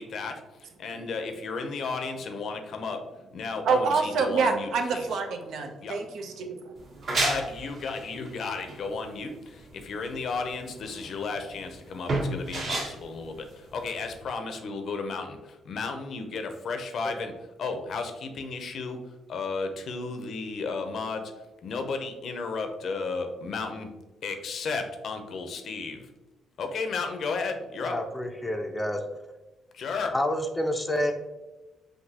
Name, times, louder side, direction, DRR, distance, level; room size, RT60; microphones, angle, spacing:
voice 1, 0.0-3.0 3.3-5.2 5.8-6.0 7.1-21.3 21.6-23.9 24.2-26.1 26.6-28.0 29.7-30.2, left 4 dB, 60° left, 6 dB, 0.6 m, -33 dB
voice 2, 3.6-6.5, right 5 dB, 80° right, 3 dB, 0.6 m, -26 dB
sound 1, 6.8-14.2, right 2 dB, 60° right, 1.4 m, -32 dB
voice 3, 27.8-29.0 30.1-31.1, left 1 dB, 10° left, 4 dB, 0.5 m, -28 dB
5.9 x 2.6 x 2.8 m, 1.1 s
cardioid pair, 90°, 0 cm